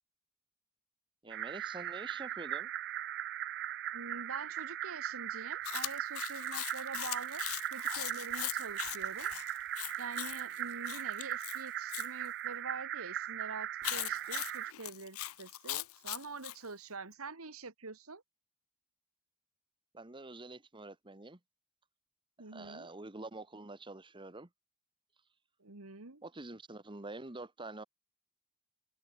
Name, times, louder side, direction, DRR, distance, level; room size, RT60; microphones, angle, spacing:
voice 1, 1.2-2.7 19.9-21.4 22.5-24.5 26.2-27.8, right 2 dB, 25° right, 1.3 m, -46 dB
sound 1, 1.3-14.7, right 12 dB, 55° right, 0.5 m, -39 dB
voice 2, 3.9-7.4 7.7-9.3 10.0-18.2 22.4-22.9 25.6-26.2, right 4 dB, 85° right, 2.1 m, -45 dB
Chewing mastication, 5.6-12.1 13.8-16.6, left 16 dB, 80° left, 0.6 m, -40 dB
head